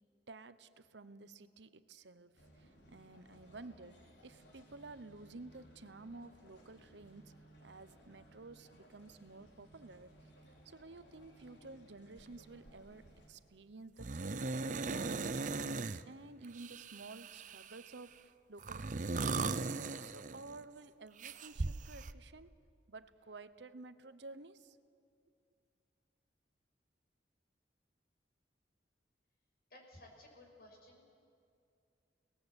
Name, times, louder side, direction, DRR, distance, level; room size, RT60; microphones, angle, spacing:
voice 1, 0.3-4.0 4.2-7.3 7.6-10.1 10.6-14.5 14.9-19.6 20.0-22.5 22.9-24.8, right 3 dB, 80° right, 13 dB, 1.0 m, -53 dB
sound 1, 2.4-13.3, equal, 85° left, 4.4 m, -61 dB
sound 2, 12.2-12.4 12.7-13.1 14.0-16.0 16.5-17.9 18.6-20.6 21.2-22.1, right 3 dB, 45° right, 0.6 m, -38 dB
voice 2, 29.7-31.1, left 1 dB, 55° left, 1 dB, 6.1 m, -57 dB
30.0 x 19.0 x 8.2 m, 2.4 s
head